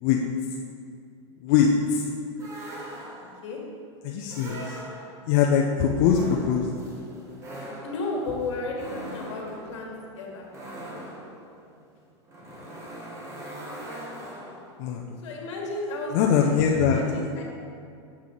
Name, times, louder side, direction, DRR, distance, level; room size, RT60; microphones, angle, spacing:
voice 1, 1.4-2.1 4.0-4.8 5.3-6.7 12.6-12.7 14.8-15.2 16.1-17.0, left 7 dB, 45° left, 0 dB, 0.6 m, -22 dB
sound 1, 2.4-3.5 4.3-5.3 6.1-14.8, right 1 dB, 20° right, 1.1 m, -41 dB
voice 2, 7.8-10.5 15.2-17.4, left 2 dB, 70° left, -1 dB, 1.7 m, -33 dB
7.4 x 5.7 x 3.8 m, 2.4 s
supercardioid pair, 145°, 15 cm